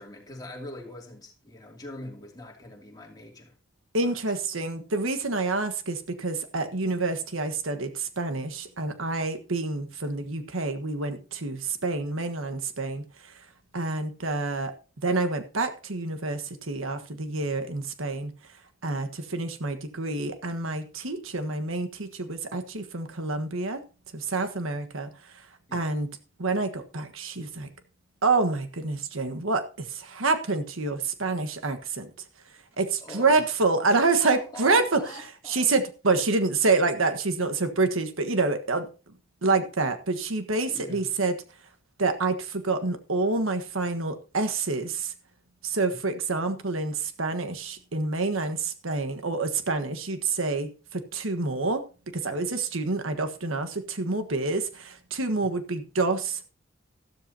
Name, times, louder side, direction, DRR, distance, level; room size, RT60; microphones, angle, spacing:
voice 1, 0.0-3.6 4.0-4.2 25.7-25.9 33.0-33.5 34.2-35.7 40.6-41.1 45.9-46.0 55.4-55.5, left 1 dB, 20° left, 2.8 m, -42 dB
voice 2, 3.9-13.4 13.7-14.7 15.0-18.3 18.8-23.8 24.1-26.1 26.4-27.7 28.2-32.1 32.8-35.0 35.5-38.9 39.4-41.4 42.0-45.1 45.6-56.5, right 3 dB, 85° right, 1.5 m, -27 dB
14.0 x 13.0 x 2.9 m
head